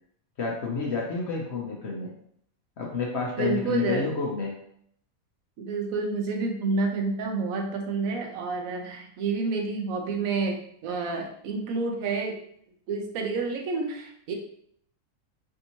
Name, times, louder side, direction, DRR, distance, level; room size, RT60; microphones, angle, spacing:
voice 1, 0.4-2.1 2.8-4.6, left 4 dB, 60° left, -2 dB, 0.8 m, -29 dB
voice 2, 3.4-4.1 5.6-12.4 12.9-14.3, right 4 dB, 75° right, 2 dB, 1.1 m, -29 dB
3.5 x 2.7 x 2.8 m, 0.68 s
omnidirectional pair, 1.5 m